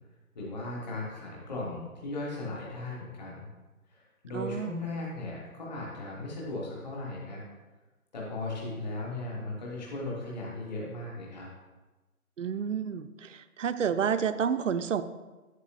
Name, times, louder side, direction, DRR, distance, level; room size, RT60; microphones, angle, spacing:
voice 1, 0.3-3.5 3.9-7.4 8.1-11.5, left 2 dB, 30° left, -4 dB, 1.4 m, -37 dB
voice 2, 4.3-4.8 12.4-15.0, right 7 dB, 60° right, 11 dB, 0.5 m, -30 dB
10.5 x 8.3 x 2.5 m, 1.2 s
figure-of-eight pair, 155°, 45 cm